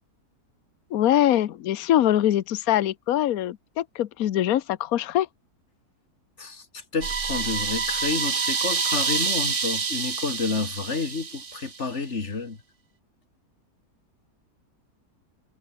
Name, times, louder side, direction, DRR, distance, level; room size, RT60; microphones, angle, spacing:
voice 1, 0.9-5.3, left 12 dB, 65° left, 1.3 m, -23 dB
voice 2, 6.4-12.6, left 4 dB, 45° left, 2.7 m, -30 dB
sound 1, 7.0-11.8, right 5 dB, 35° right, 0.6 m, -27 dB
omnidirectional pair, 1.7 m